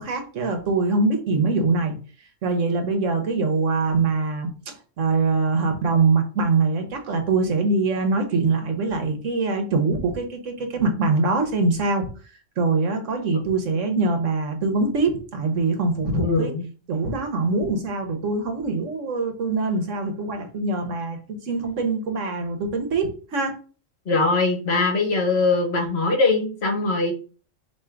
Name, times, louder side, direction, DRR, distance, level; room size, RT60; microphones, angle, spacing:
voice 1, 0.0-1.9 2.4-12.1 12.6-16.5 16.9-23.5, right 3 dB, 75° right, 1.3 m, -23 dB
voice 2, 16.1-16.6 24.1-27.1, left 3 dB, 55° left, 1.2 m, -21 dB
3.7 x 3.0 x 4.4 m
omnidirectional pair, 1.3 m